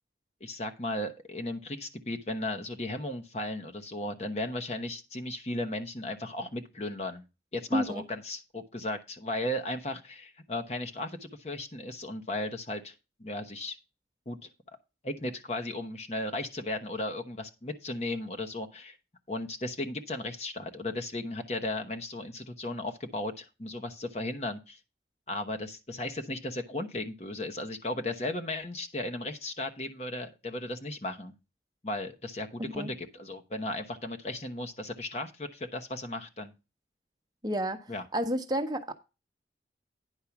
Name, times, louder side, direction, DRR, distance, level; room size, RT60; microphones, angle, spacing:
voice 1, 0.4-7.2 7.5-12.9 13.2-13.8 14.3-14.5 15.0-19.0 19.3-24.8 25.3-31.3 31.8-36.5 37.9-38.0, left 1 dB, 35° left, 5 dB, 1.0 m, -35 dB
voice 2, 7.7-8.0 32.7-32.9 37.4-37.8 38.1-38.9, equal, 25° right, 5 dB, 0.9 m, -30 dB
10.0 x 4.6 x 5.9 m, 0.28 s
head